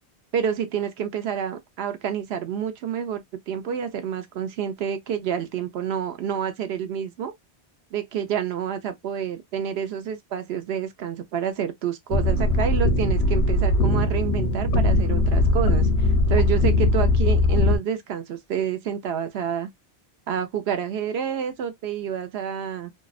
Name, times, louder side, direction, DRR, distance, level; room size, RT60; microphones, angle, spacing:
voice 1, 0.3-7.3 7.9-19.7 20.3-22.9, right 8 dB, 80° right, 0.8 m, -28 dB
sound 1, 12.1-17.8, left 2 dB, 85° left, 1.0 m, -20 dB
2.7 x 2.0 x 2.3 m
omnidirectional pair, 1.1 m